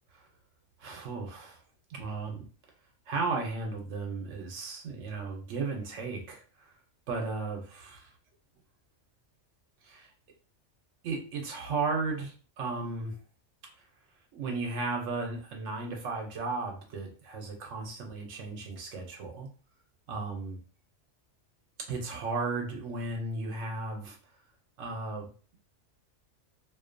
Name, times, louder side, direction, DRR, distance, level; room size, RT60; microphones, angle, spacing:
voice 1, 0.8-1.6 1.9-2.4 3.1-6.8 7.1-8.1 9.8-10.1 11.0-13.2 13.8-13.9 14.3-19.5 20.1-20.6 21.9-24.2 24.8-25.6, right 3 dB, 90° right, 1 dB, 1.0 m, -35 dB
2.6 x 2.2 x 2.5 m, 0.39 s
omnidirectional pair, 1.2 m